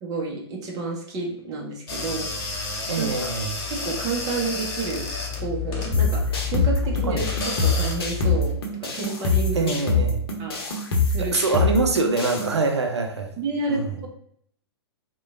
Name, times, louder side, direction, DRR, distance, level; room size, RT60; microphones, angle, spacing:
voice 1, 0.0-3.3 3.7-5.0 5.4-8.5 8.8-9.7 10.4-10.6 11.0-11.5 13.4-14.1, right 3 dB, 25° right, 0 dB, 0.7 m, -30 dB
sound 1, 1.9-8.6, left 5 dB, 30° left, 0.7 m, -30 dB
voice 2, 2.9-3.5 7.0-7.2 9.5-10.2 11.2-13.3 13.7-14.0, right 3 dB, 80° right, 4 dB, 0.4 m, -24 dB
sound 2, 5.9-12.5, left 3 dB, 60° left, 0.7 m, -24 dB
3.0 x 2.1 x 2.5 m, 0.65 s
figure-of-eight pair, 110°, 14 cm